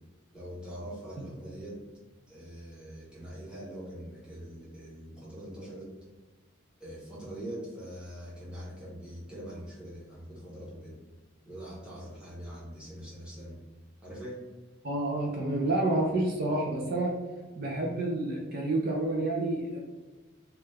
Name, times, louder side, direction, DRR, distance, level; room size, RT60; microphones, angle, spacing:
voice 1, 0.3-1.8 2.3-5.9 6.8-11.0 11.4-13.6 14.0-14.4 16.0-16.1, equal, 5° right, -8 dB, 0.9 m, -43 dB
voice 2, 14.8-17.2 17.6-19.8, right 2 dB, 45° right, -1 dB, 0.4 m, -29 dB
3.1 x 2.3 x 3.2 m, 1.2 s
head